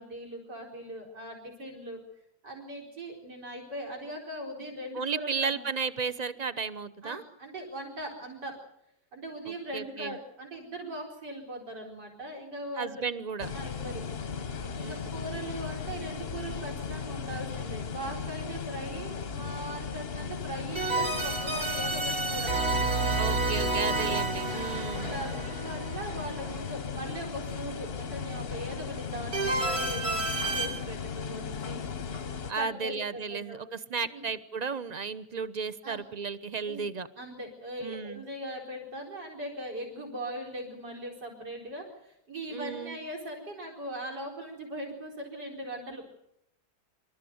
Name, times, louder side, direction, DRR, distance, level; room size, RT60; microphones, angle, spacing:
voice 1, 0.0-2.0 2.4-5.6 7.0-8.6 9.1-13.0 13.5-14.0 14.7-22.6 24.5-31.8 32.6-33.6 34.1-34.3 35.8-36.0 36.7-36.8 37.2-46.1, right 1 dB, 70° right, 1 dB, 5.1 m, -40 dB
voice 2, 4.9-7.2 9.7-10.2 12.8-13.5 14.8-15.0 23.2-25.1 32.5-37.1 37.8-38.2 42.5-43.0, right 5 dB, 35° right, 14 dB, 0.7 m, -34 dB
sound 1, 13.4-32.5, left 6 dB, 40° left, 1.0 m, -37 dB
sound 2, 20.8-26.7 29.3-30.7, right 3 dB, 55° right, 6.8 m, -30 dB
27.0 x 14.0 x 9.5 m, 0.76 s
omnidirectional pair, 1.9 m